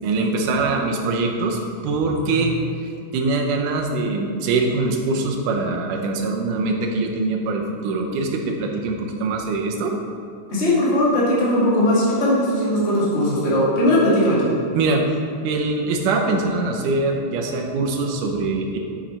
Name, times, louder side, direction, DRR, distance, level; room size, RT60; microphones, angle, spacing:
voice 1, 0.0-2.7 3.1-9.9 14.7-15.0 15.4-18.8, right 3 dB, 80° right, 2 dB, 2.4 m, -23 dB
voice 2, 10.5-14.5, left 1 dB, 25° left, -7 dB, 1.9 m, -19 dB
7.8 x 7.3 x 4.3 m, 2.5 s
omnidirectional pair, 3.7 m